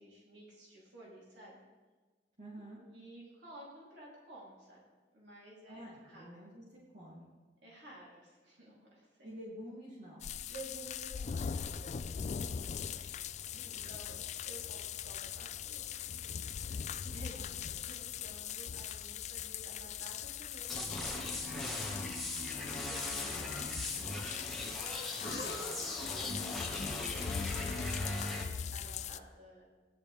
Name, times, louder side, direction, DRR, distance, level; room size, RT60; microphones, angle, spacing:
voice 1, 0.0-1.6 2.8-4.8 5.1-6.4 7.6-9.3 10.5-12.1 12.9-13.2 13.6-16.1 16.5-22.1 22.6-24.4 24.9-28.4 28.7-29.7, right 1 dB, 75° right, -5 dB, 3.4 m, -54 dB
voice 2, 2.4-2.8 5.7-7.3 9.2-10.3 13.5-14.0 17.3-17.5 23.3-23.6, equal, 45° right, -7 dB, 2.8 m, -50 dB
sound 1, 10.2-29.2, left 8 dB, 40° left, 0.3 m, -41 dB
sound 2, 20.6-24.0 25.1-26.2, left 4 dB, 80° left, 1.9 m, -53 dB
sound 3, 20.7-28.4, left 1 dB, ahead, 1.7 m, -39 dB
16.5 x 11.0 x 3.5 m, 1.3 s
head